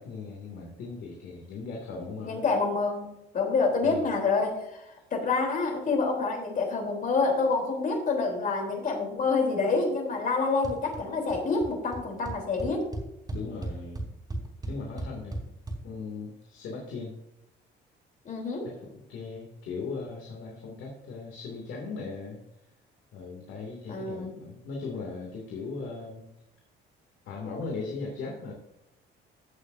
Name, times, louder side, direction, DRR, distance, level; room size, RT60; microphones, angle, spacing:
voice 1, 0.0-2.4 3.8-4.0 13.3-14.0 14.7-15.4 15.8-17.1 18.6-22.4 23.1-26.3 27.3-28.5, left 4 dB, 80° left, 0 dB, 2.5 m, -38 dB
voice 2, 2.2-3.1 3.3-12.9 18.3-18.7 23.9-24.3, left 4 dB, 45° left, 1 dB, 3.6 m, -27 dB
sound 1, 10.6-11.0 11.3-11.7 11.9-12.0 12.3-15.8, right 2 dB, 20° right, 3.5 m, -35 dB
15.5 x 8.2 x 2.7 m, 0.86 s
cardioid pair, 130°, 19 cm